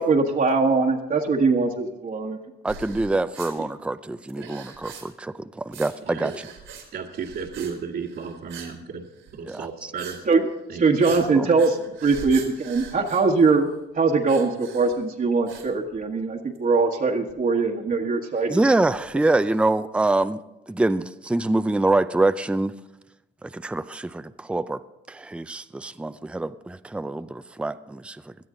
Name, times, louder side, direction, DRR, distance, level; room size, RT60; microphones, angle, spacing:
voice 1, 0.0-2.4 10.2-10.5 10.7-13.7 13.9-18.6, right 4 dB, 45° right, -1 dB, 1.4 m, -21 dB
voice 2, 2.6-6.5 9.4-9.9 11.3-11.5 18.5-20.4 20.7-22.7 23.4-24.8 25.1-28.2, right 2 dB, 5° right, 12 dB, 0.5 m, -25 dB
sound 1, 2.7-3.5 4.3-5.3 5.7-5.9 6.2-6.9 7.1-7.7 8.0-8.8 9.1-9.4 10.0-10.2 10.5-10.6 11.0-13.8 14.3-15.0 15.5-16.2 16.5-16.6 17.3-17.4 18.3-19.6, right 5 dB, 85° right, 3.2 m, -41 dB
voice 3, 6.9-9.1 9.3-10.2 10.7-10.8 11.1-11.3 13.0-13.1, right 6 dB, 70° right, -7 dB, 1.9 m, -34 dB
17.5 x 12.5 x 3.8 m, 0.95 s
cardioid pair, 90°, 20 cm